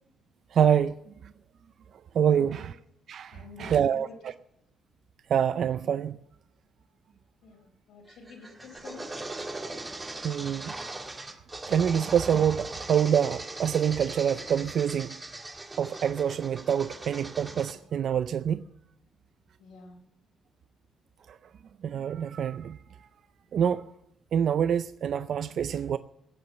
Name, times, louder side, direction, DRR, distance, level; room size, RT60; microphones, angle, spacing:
voice 1, 0.5-1.0 2.1-2.8 3.1-4.3 5.3-6.2 9.5-9.6 10.2-10.8 11.7-15.2 15.8-18.7 21.3-21.4 21.8-22.8 23.5-23.9 24.3-26.0, right 8 dB, 65° right, 0.5 m, -26 dB
voice 2, 2.3-2.7 3.3-4.1 7.4-9.1 19.6-20.0, left 4 dB, 80° left, 4.1 m, -48 dB
sound 1, 8.1-17.7, right 2 dB, 20° right, 2.0 m, -40 dB
17.0 x 7.6 x 7.3 m
cardioid pair, 90°, 0 cm